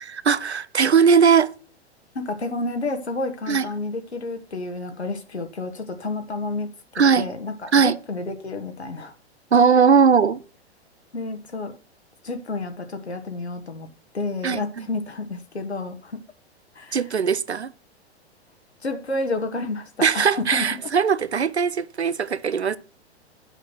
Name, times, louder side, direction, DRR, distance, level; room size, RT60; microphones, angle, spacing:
voice 1, 0.1-1.5 3.5-3.7 7.0-7.3 7.7-8.0 9.5-10.4 14.4-14.8 16.9-17.7 20.0-22.8, right 6 dB, 80° right, 0.7 m, -19 dB
voice 2, 2.1-9.1 11.1-11.7 12.2-13.9 14.1-16.2 16.7-17.1 18.8-20.6, left 2 dB, 80° left, 1.5 m, -30 dB
8.9 x 6.4 x 6.1 m
figure-of-eight pair, 105°, 33 cm